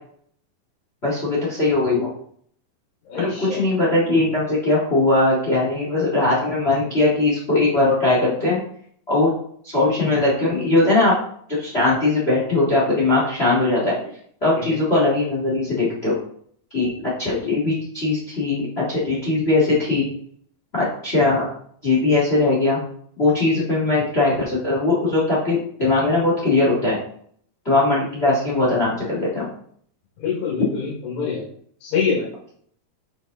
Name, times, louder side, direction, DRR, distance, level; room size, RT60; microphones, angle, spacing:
voice 1, 1.0-2.1 3.1-8.6 9.1-9.3 9.6-11.1 11.5-14.0 14.4-16.2 16.7-16.9 17.2-20.1 20.7-21.5 21.8-22.8 23.2-27.0 27.6-29.5, left 2 dB, 40° left, -5 dB, 0.9 m, -20 dB
voice 2, 3.1-3.6 14.6-14.8 30.2-31.5 31.8-32.3, left 6 dB, 80° left, -5 dB, 3.9 m, -25 dB
7.6 x 5.1 x 3.9 m, 0.62 s
omnidirectional pair, 4.8 m